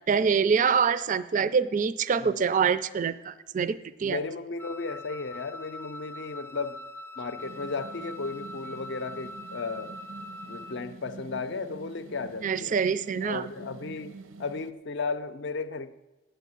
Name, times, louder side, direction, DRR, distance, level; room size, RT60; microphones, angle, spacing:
voice 1, 0.1-4.2 12.4-13.5, right 6 dB, 40° right, 0.3 m, -25 dB
voice 2, 4.0-6.8 7.2-10.0 10.5-12.8 13.2-15.9, left 4 dB, 60° left, 0.6 m, -35 dB
Wind instrument woodwind instrument, 4.6-10.8, left 1 dB, 10° left, 0.6 m, -43 dB
sound 1, 7.4-14.7, right 3 dB, 90° right, 0.6 m, -46 dB
9.2 x 7.8 x 8.3 m
head